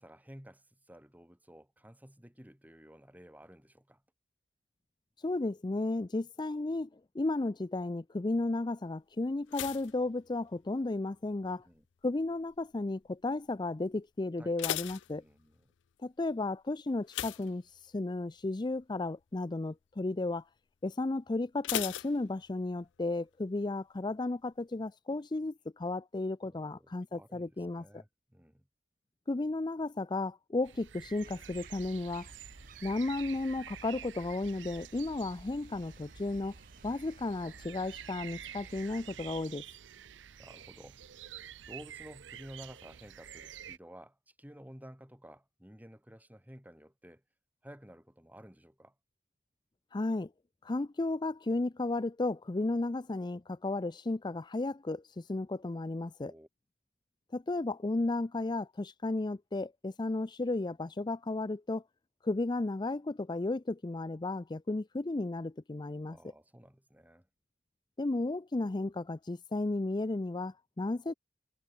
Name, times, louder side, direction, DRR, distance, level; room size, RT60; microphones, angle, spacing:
voice 1, 0.0-4.0 11.4-11.8 14.4-14.6 15.1-15.7 26.4-28.7 40.4-41.0 41.7-47.2 47.6-48.9 56.2-56.5 66.1-67.3, equal, 10° right, 4.1 m, -53 dB
voice 2, 5.2-6.9 7.1-11.7 12.0-15.2 16.0-20.5 20.8-28.0 29.3-32.3 32.8-36.5 36.8-39.6 49.9-50.3 50.6-56.3 57.3-61.8 62.2-66.2 68.0-71.1, left 2 dB, 25° left, 0.5 m, -34 dB
sound 1, 9.5-11.0 11.2-11.7 12.3-12.7 13.0-13.1 13.5-13.6 14.2-15.8 17.1-18.2 18.6-18.8 19.2-19.3 21.6-22.8 23.1-23.2, left 12 dB, 90° left, 0.4 m, -38 dB
sound 2, 30.6-43.8, right 10 dB, 90° right, 0.6 m, -49 dB
sound 3, 31.2-39.4, right 1 dB, 50° right, 3.9 m, -55 dB
head